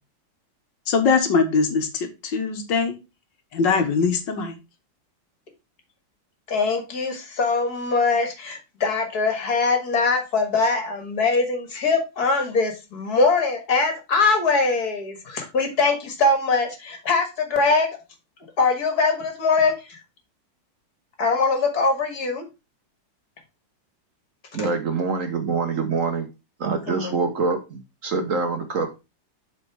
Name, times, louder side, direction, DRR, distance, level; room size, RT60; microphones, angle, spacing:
voice 1, 0.9-3.0 3.5-4.6, left 5 dB, 75° left, 6 dB, 1.9 m, -22 dB
voice 2, 6.5-18.0 18.6-20.0 21.2-22.4 26.9-27.2, left 3 dB, 55° left, 5 dB, 2.2 m, -22 dB
voice 3, 24.5-26.3 26.6-28.9, right 4 dB, 50° right, 6 dB, 1.2 m, -25 dB
7.8 x 4.4 x 4.7 m, 0.26 s
omnidirectional pair, 2.0 m